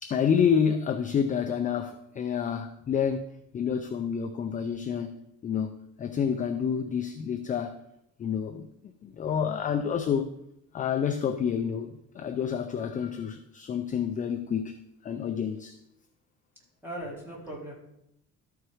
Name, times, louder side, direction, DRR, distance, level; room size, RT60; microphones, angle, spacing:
voice 1, 0.0-3.2 3.5-5.2 5.4-7.8 8.2-8.7 9.0-10.3 10.7-15.8, left 7 dB, 25° left, 0.4 m, -28 dB
voice 2, 16.8-17.7, right 1 dB, 5° right, 2.4 m, -39 dB
12.5 x 4.6 x 4.8 m
cardioid pair, 170°, 30 cm